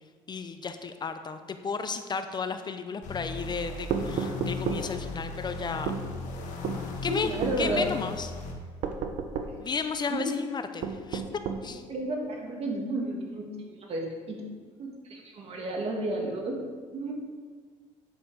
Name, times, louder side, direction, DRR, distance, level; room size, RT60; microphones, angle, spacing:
voice 1, 0.3-6.0 7.0-7.3 7.6-8.3 9.6-11.2 11.6-11.8, left 5 dB, 30° left, 9 dB, 0.6 m, -33 dB
sound 1, 3.0-8.5, left 3 dB, 70° left, 1.6 m, -37 dB
sound 2, 3.9-4.9 5.9-6.0 6.6-6.8 7.4-7.6 8.8-9.6 10.8-11.7, right 6 dB, 65° right, 0.9 m, -31 dB
voice 2, 7.1-7.9 10.1-10.3 11.9-13.5 13.9-14.4 14.8-16.5 16.9-17.2, right 1 dB, 50° right, 0 dB, 2.3 m, -32 dB
9.3 x 6.6 x 5.0 m, 1.5 s
supercardioid pair, 90°, 13 cm